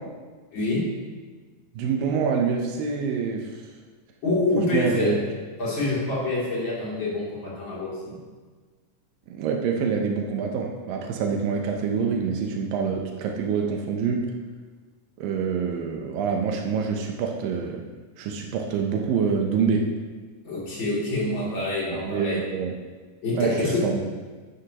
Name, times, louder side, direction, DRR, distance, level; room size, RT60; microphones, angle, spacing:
voice 1, 0.5-0.9 4.2-5.2 5.6-8.2 20.4-22.4 23.2-23.8, left 2 dB, 35° left, -7 dB, 3.4 m, -26 dB
voice 2, 1.8-3.5 4.7-5.2 9.3-14.3 15.2-17.9 18.2-19.9 21.9-22.7 23.3-24.0, right 6 dB, 90° right, 2 dB, 2.5 m, -26 dB
12.0 x 9.8 x 2.9 m, 1.4 s
omnidirectional pair, 3.8 m